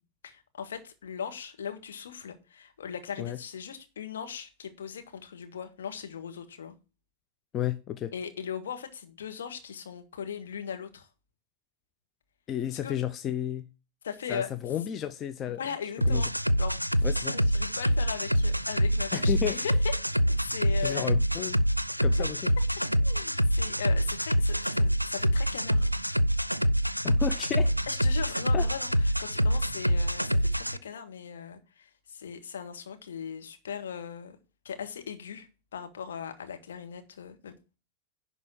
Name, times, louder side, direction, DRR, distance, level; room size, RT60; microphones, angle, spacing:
voice 1, 0.2-6.8 8.1-11.1 12.8-12.9 14.0-14.5 15.6-16.8 17.3-19.9 20.4-21.4 22.2-22.3 23.0-25.9 27.9-28.9 29.2-34.4 34.7-37.5, left 7 dB, 65° left, 1.7 m, -38 dB
voice 2, 7.5-8.1 12.5-13.7 14.3-15.6 16.1-16.2 17.0-17.3 19.1-19.7 20.8-21.6 22.0-22.4 27.0-27.7 28.5-28.7, left 10 dB, 30° left, 0.8 m, -32 dB
sound 1, 16.0-30.8, equal, 90° right, 0.4 m, -26 dB
11.0 x 4.2 x 7.2 m
figure-of-eight pair, 90°, 0 cm